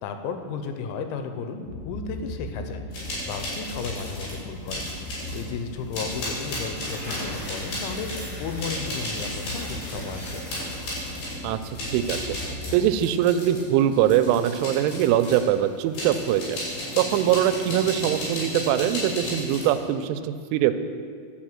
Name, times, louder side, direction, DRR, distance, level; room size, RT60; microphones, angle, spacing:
voice 1, 0.0-4.8 5.3-10.4, left 5 dB, 90° left, 7 dB, 3.0 m, -34 dB
sound 1, 1.6-12.9, left 1 dB, 75° left, 3.5 m, -39 dB
sound 2, 2.9-4.4 4.7-5.5 5.9-15.5 15.9-19.8, left 1 dB, 55° left, 4.9 m, -34 dB
sound 3, 6.7-11.0, equal, 25° left, 1.4 m, -40 dB
voice 2, 11.4-12.4 12.7-16.6 17.0-20.7, right 11 dB, 90° right, 11 dB, 3.0 m, -22 dB
11.0 x 5.0 x 7.4 m, 2.2 s
omnidirectional pair, 5.4 m